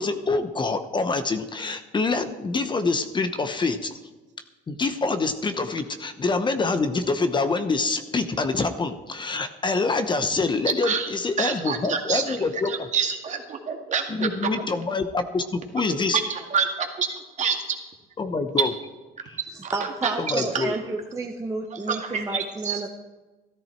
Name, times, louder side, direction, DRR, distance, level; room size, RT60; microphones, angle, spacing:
voice 1, 0.0-3.9 4.7-12.9 14.1-16.2 18.2-18.7 19.3-19.4 20.2-20.7, left 3 dB, 25° left, 10 dB, 0.9 m, -26 dB
voice 2, 11.4-12.4 12.6-14.6 15.8-15.9 16.1-17.1 17.4-17.8 18.6-18.7 19.6-20.8 21.7-22.8, right 6 dB, 45° right, 4 dB, 2.1 m, -27 dB
voice 3, 19.7-22.9, right 3 dB, 20° right, 1 dB, 1.1 m, -30 dB
14.0 x 13.0 x 4.5 m, 1.2 s
cardioid pair, 110°, 17 cm